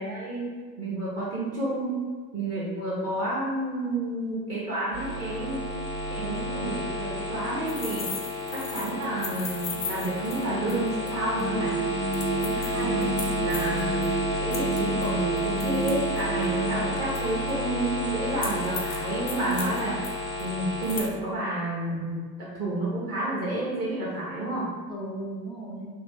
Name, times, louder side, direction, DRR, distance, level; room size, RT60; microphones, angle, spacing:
voice 1, 0.0-2.0 2.3-5.8 6.1-8.2 8.5-11.7 12.3-13.1 13.4-14.0 14.4-20.0 20.4-24.7, right 1 dB, 30° right, -7 dB, 1.0 m, -30 dB
sound 1, 4.9-21.1, left 1 dB, 80° right, 1.5 m, -31 dB
voice 2, 6.2-6.7 12.8-13.5 24.9-25.9, right 1 dB, 10° left, -3 dB, 0.4 m, -36 dB
sound 2, 7.7-11.1 11.4-11.5 12.1-14.1 14.5-16.4 17.1-17.5 18.4-19.0 19.3-20.1 20.4-20.5 20.8-21.0, left 5 dB, 90° left, 0.7 m, -37 dB
sound 3, 11.4-16.9, right 4 dB, 45° right, 1.3 m, -30 dB
3.0 x 2.2 x 3.6 m, 1.5 s
figure-of-eight pair, 80°, 49 cm